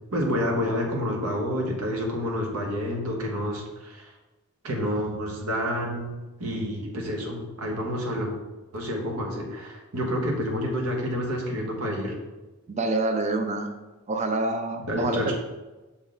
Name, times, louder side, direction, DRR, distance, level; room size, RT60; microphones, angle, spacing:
voice 1, 0.1-4.1 4.6-8.3 8.7-12.2 14.9-15.3, equal, 85° right, 0 dB, 1.4 m, -29 dB
voice 2, 12.7-13.7 14.1-15.3, right 2 dB, 30° right, 6 dB, 0.5 m, -27 dB
6.0 x 4.0 x 3.9 m, 1.1 s
head